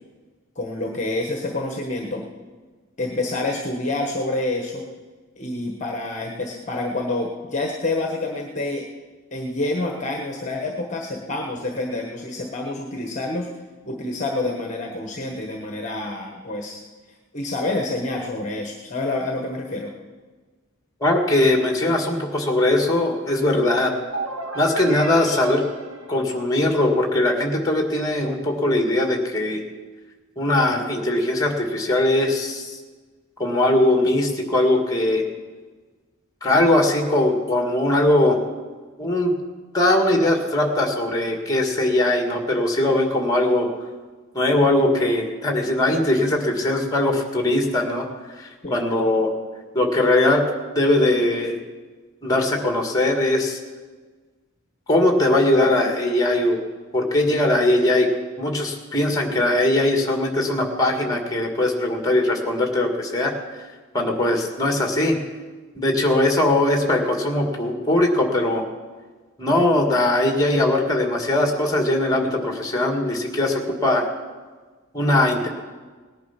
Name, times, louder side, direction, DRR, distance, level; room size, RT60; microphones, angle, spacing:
voice 1, 0.5-2.2 3.0-4.8 5.4-8.9 9.3-13.5 13.8-16.8 17.3-19.9 48.6-48.7, left 2 dB, 35° left, 2 dB, 1.3 m, -27 dB
voice 2, 21.0-23.9 24.6-25.6 26.1-29.6 30.4-32.7 33.4-35.2 36.4-38.4 39.0-39.3 39.7-43.7 44.3-48.1 48.4-49.3 49.7-50.5 50.8-51.6 52.2-53.6 54.9-56.6 56.9-58.1 58.4-63.3 63.9-65.2 65.8-68.6 69.4-74.1 74.9-75.5, left 1 dB, 15° left, 3 dB, 1.9 m, -20 dB
sound 1, 24.1-26.9, right 2 dB, 75° right, 1.6 m, -34 dB
18.5 x 10.5 x 5.8 m, 1.4 s
head